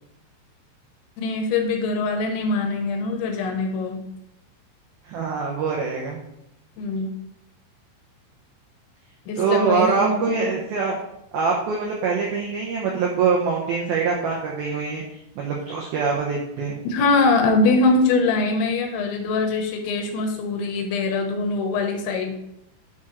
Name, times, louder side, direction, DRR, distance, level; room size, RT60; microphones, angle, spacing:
voice 1, 1.2-4.0 6.8-7.1 9.3-10.2 16.9-22.3, left 3 dB, 80° left, 4 dB, 3.1 m, -22 dB
voice 2, 5.1-6.3 9.4-11.0 11.3-15.0 15.4-16.8, right 5 dB, 90° right, -1 dB, 2.1 m, -24 dB
11.0 x 6.1 x 3.0 m, 0.82 s
omnidirectional pair, 5.6 m